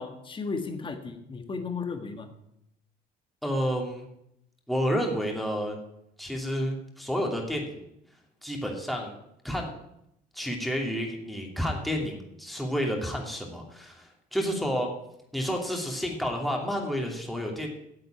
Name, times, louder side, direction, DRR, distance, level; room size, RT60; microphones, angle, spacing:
voice 1, 0.0-2.3, left 4 dB, 30° left, 7 dB, 1.7 m, -34 dB
voice 2, 3.4-4.1 4.7-5.8 6.2-7.9 8.4-9.1 9.4-9.7 10.3-14.9 15.3-17.7, equal, ahead, 0 dB, 2.6 m, -30 dB
9.6 x 7.9 x 9.0 m, 0.80 s
cardioid pair, 110°, 17 cm